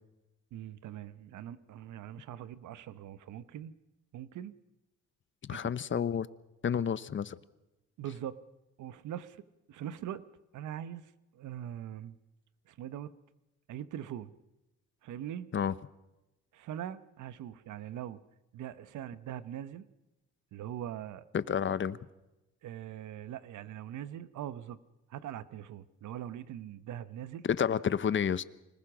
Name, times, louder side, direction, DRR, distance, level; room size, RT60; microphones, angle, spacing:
voice 1, 0.5-3.7 4.1-4.5 5.5-6.0 8.0-8.4 8.8-9.4 9.7-10.2 10.5-12.2 12.7-13.1 13.7-14.3 15.0-15.5 16.5-18.2 18.5-19.8 20.5-21.2 22.6-24.8 25.1-27.4, right 10 dB, 75° right, 15 dB, 1.1 m, -42 dB
voice 2, 5.4-6.3 6.6-7.3 15.5-15.7 21.3-22.0 27.5-28.4, left 8 dB, 40° left, 16 dB, 0.9 m, -30 dB
25.5 x 19.5 x 6.2 m, 0.99 s
cardioid pair, 90°, 30 cm